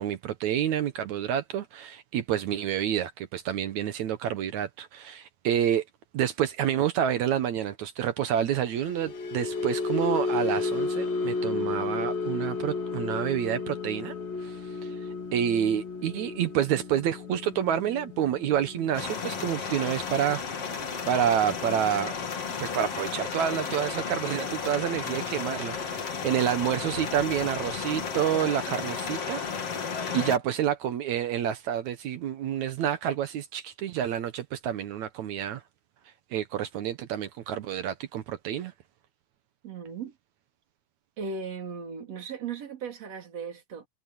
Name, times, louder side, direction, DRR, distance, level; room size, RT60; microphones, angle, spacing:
voice 1, 0.0-5.8 6.1-14.1 14.4-14.6 15.3-20.4 20.8-22.1 22.6-29.7 30.1-35.6 36.3-38.7, right 10 dB, 70° right, 2.1 m, -28 dB
sound 1, 8.6-25.0 25.3-25.6 26.0-26.2, left 3 dB, 90° left, 6.0 m, -34 dB
sound 2, 18.9-30.4, left 6 dB, 45° left, 3.6 m, -33 dB
voice 2, 39.6-40.1 41.2-43.9, right 5 dB, 50° right, 4.6 m, -37 dB
omnidirectional pair, 3.9 m